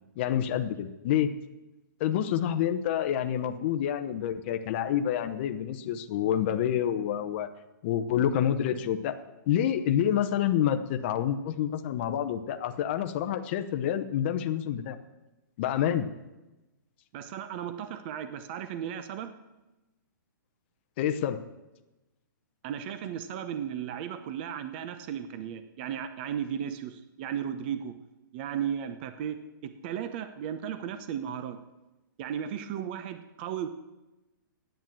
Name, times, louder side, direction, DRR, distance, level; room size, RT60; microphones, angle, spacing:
voice 1, 0.2-1.3 2.0-7.5 7.8-9.1 9.5-15.0 15.6-16.1 21.0-21.4, left 10 dB, 30° left, 7 dB, 0.8 m, -28 dB
voice 2, 17.1-19.3 22.6-27.9 28.3-31.6 32.2-33.7, right 9 dB, 30° right, 10 dB, 0.8 m, -35 dB
11.0 x 9.1 x 7.6 m, 1.0 s
hypercardioid pair, 165°, 11 cm